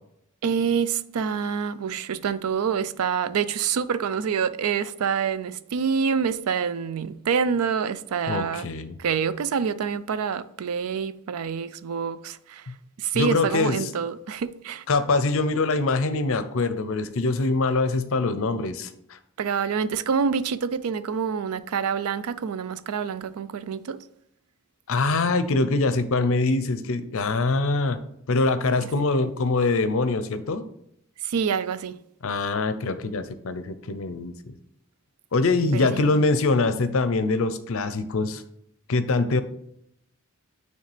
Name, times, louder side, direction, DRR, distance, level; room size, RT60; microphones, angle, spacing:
voice 1, 0.4-8.7 9.0-12.7 13.0-14.8 19.4-24.0 28.8-28.9 31.2-32.0 35.7-36.2, right 6 dB, 80° right, 0.4 m, -27 dB
voice 2, 8.3-9.0 12.7-12.8 13.1-13.9 14.9-19.2 24.9-28.0 28.3-30.6 32.2-34.5 35.3-38.4 38.9-39.4, left 3 dB, 65° left, 0.6 m, -24 dB
9.1 x 3.2 x 3.3 m
head